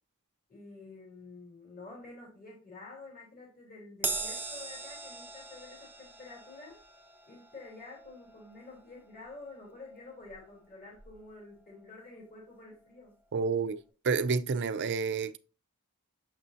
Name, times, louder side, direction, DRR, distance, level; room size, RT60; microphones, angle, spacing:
voice 1, 0.5-6.8 7.3-13.1, left 3 dB, 40° left, 2.9 m, -49 dB
Crash cymbal, 4.0-10.7 11.0-11.2 12.3-12.4, right 4 dB, 10° right, 0.7 m, -41 dB
voice 2, 13.3-13.8 14.0-15.4, right 5 dB, 55° right, 0.5 m, -29 dB
6.9 x 5.6 x 2.6 m
head